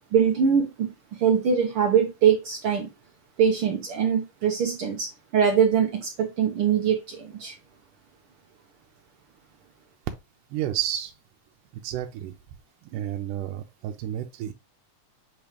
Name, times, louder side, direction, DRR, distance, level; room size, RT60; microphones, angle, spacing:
voice 1, 0.1-0.9 1.2-2.9 3.4-7.6, right 7 dB, 70° right, 1.3 m, -23 dB
voice 2, 10.5-11.1 11.8-12.3 12.9-14.5, right 11 dB, 90° right, 2.2 m, -31 dB
7.7 x 2.9 x 5.1 m
omnidirectional pair, 3.6 m